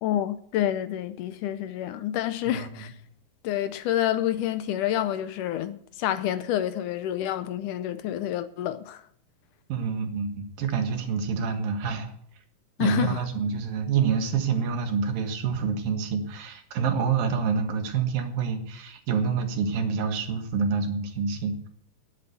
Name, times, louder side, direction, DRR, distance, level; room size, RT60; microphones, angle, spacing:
voice 1, 0.0-3.0 3.4-9.0 12.8-13.3, left 12 dB, 75° left, 2.0 m, -28 dB
voice 2, 9.7-12.1 12.8-21.7, right 6 dB, 75° right, 3.3 m, -27 dB
11.0 x 8.5 x 8.2 m
omnidirectional pair, 4.1 m